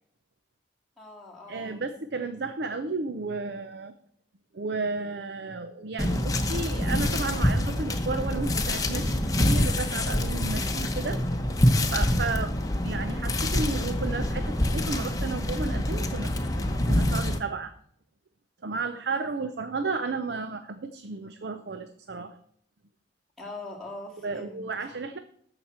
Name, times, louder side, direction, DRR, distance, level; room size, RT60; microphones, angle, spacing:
voice 1, 1.0-1.8 12.4-12.5 23.4-24.6, left 2 dB, ahead, -5 dB, 2.2 m, -42 dB
voice 2, 1.5-3.9 4.5-11.2 11.9-16.3 16.6-17.7 18.6-22.4 24.2-25.2, right 3 dB, 60° right, 9 dB, 0.6 m, -33 dB
sound 1, 6.0-17.4, left 1 dB, 20° left, 1.0 m, -26 dB
14.0 x 6.0 x 4.3 m, 0.68 s
head